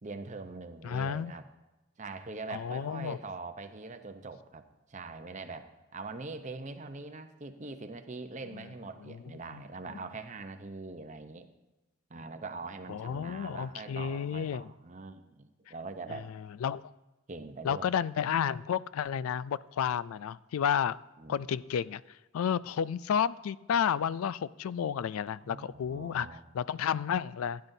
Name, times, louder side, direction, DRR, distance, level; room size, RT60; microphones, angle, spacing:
voice 1, 0.0-1.5 2.0-11.5 12.1-16.3 17.3-17.9 21.2-21.4 25.4-26.4, right 3 dB, 35° right, 8 dB, 0.7 m, -43 dB
voice 2, 0.8-1.3 2.5-3.2 9.1-9.2 9.5-9.6 12.9-14.7 16.1-16.2 16.6-16.8 17.6-21.0 21.3-22.0 22.3-26.3 26.5-27.6, left 8 dB, 85° left, 19 dB, 0.3 m, -31 dB
16.0 x 10.5 x 2.7 m, 1.1 s
head